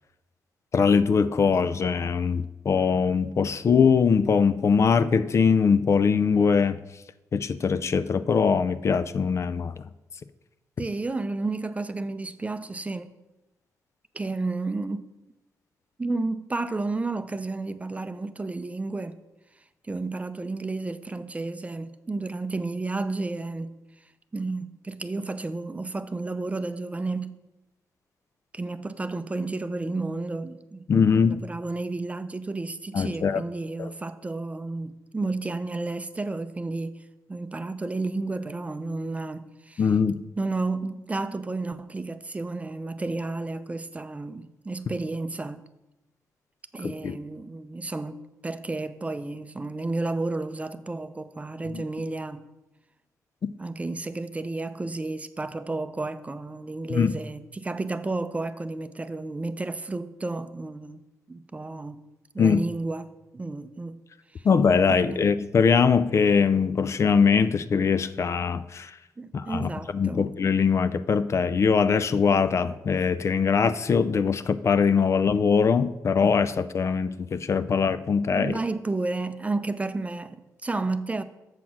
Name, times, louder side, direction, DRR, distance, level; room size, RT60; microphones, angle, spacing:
voice 1, 0.7-6.8 7.3-9.8 30.9-31.4 32.9-33.4 33.8-33.9 39.8-40.2 46.8-47.2 51.7-51.8 56.9-57.1 62.4-62.6 64.4-68.9 69.3-78.5, left 6 dB, 45° left, 0.4 m, -22 dB
voice 2, 10.8-13.1 14.1-15.1 16.0-19.2 19.8-23.7 24.3-27.4 28.5-30.9 31.3-37.0 37.3-39.9 40.4-45.7 46.7-52.5 53.6-62.1 62.3-64.0 64.4-64.5 65.0-65.2 69.2-70.3 70.7-70.8 78.3-81.2, right 3 dB, 20° right, 0.5 m, -32 dB
7.3 x 6.0 x 6.0 m
cardioid pair, 75°, 6 cm